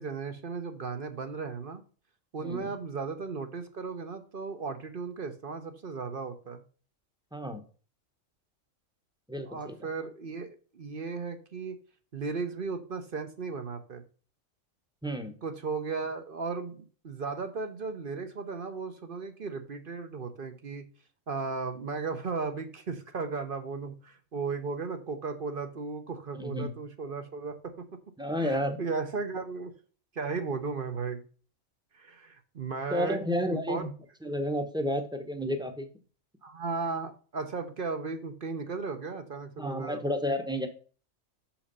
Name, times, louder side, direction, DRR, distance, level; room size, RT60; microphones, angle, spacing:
voice 1, 0.0-1.8 2.3-6.6 9.4-11.8 12.1-14.0 15.4-20.8 21.3-27.9 28.4-29.7 30.1-31.2 31.9-33.2 33.5-33.9 36.4-40.0, right 4 dB, 45° right, 8 dB, 1.0 m, -35 dB
voice 2, 2.4-2.7 7.3-7.6 9.3-9.8 15.0-15.4 26.3-26.7 28.2-28.8 32.9-33.9 34.2-35.9 39.6-40.7, equal, 5° right, 6 dB, 0.9 m, -31 dB
6.4 x 5.9 x 5.4 m, 0.40 s
omnidirectional pair, 1.4 m